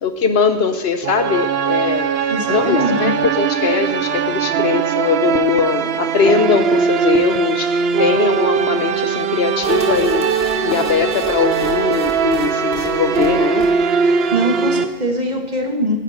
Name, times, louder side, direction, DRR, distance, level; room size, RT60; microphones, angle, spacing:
voice 1, 0.0-2.1 2.5-13.7, left 6 dB, 80° left, 8 dB, 1.1 m, -20 dB
sound 1, 1.0-14.8, right 6 dB, 75° right, 0.9 m, -20 dB
voice 2, 2.3-3.2 14.3-16.0, equal, 45° right, 2 dB, 1.9 m, -21 dB
sound 2, 9.6-15.0, right 1 dB, 5° left, 2.5 m, -27 dB
18.5 x 11.5 x 5.0 m, 1.3 s
omnidirectional pair, 1.0 m